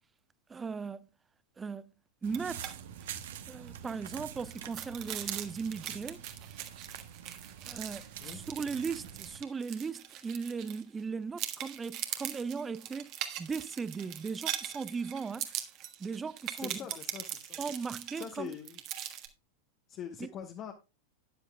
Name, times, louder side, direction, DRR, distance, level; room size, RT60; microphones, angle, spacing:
voice 1, 0.5-1.1 1.6-1.9 2.2-2.7 3.5-6.2 7.7-13.1 13.4-15.5 16.0-16.8 17.6-18.5 20.2-20.3, right 5 dB, 15° right, 0.5 m, -37 dB
sound 1, 2.2-9.4, right 9 dB, 55° right, 1.0 m, -46 dB
sound 2, 2.3-2.7 3.0-3.1 3.5-11.0 11.4-19.3, right 11 dB, 40° right, 1.4 m, -41 dB
voice 2, 16.6-17.6 18.1-18.8 19.9-20.7, left 8 dB, 35° left, 1.1 m, -43 dB
12.5 x 10.0 x 2.3 m
figure-of-eight pair, 90°, 0 cm